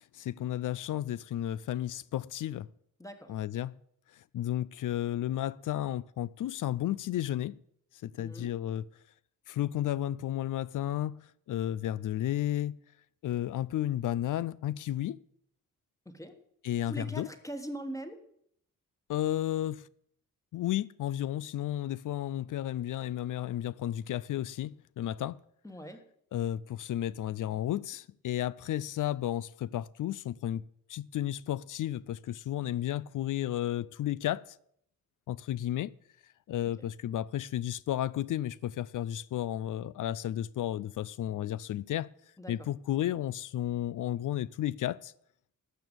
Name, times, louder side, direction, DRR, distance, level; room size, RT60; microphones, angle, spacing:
voice 1, 0.0-2.7 3.3-3.7 4.3-7.6 8.0-8.8 9.5-11.2 11.5-12.8 13.2-15.2 16.6-17.3 19.1-19.8 20.5-25.4 26.3-30.6 30.9-34.4 35.3-35.9 36.5-42.1 42.5-45.1, left 12 dB, 65° left, 0.5 m, -33 dB
voice 2, 8.2-8.5 16.0-16.3 16.9-18.2 25.6-26.0 42.4-42.7, right 1 dB, 10° left, 1.4 m, -41 dB
12.5 x 6.9 x 8.9 m
wide cardioid pair, 130°, 33 cm